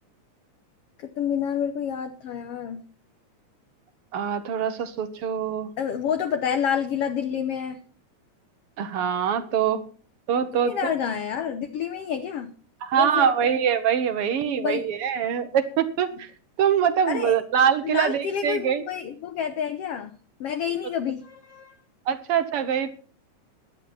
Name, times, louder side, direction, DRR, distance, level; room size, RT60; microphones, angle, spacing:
voice 1, 1.0-2.8 5.8-7.8 10.6-12.5 12.9-13.5 14.5-14.9 17.1-17.4 17.8-20.1 20.4-21.8, left 8 dB, 65° left, 7 dB, 1.6 m, -28 dB
voice 2, 4.1-5.7 8.8-9.8 10.3-10.9 12.8-16.3 16.6-18.8 22.1-22.9, right 8 dB, 65° right, 10 dB, 1.5 m, -24 dB
16.0 x 10.5 x 4.3 m, 0.40 s
omnidirectional pair, 3.5 m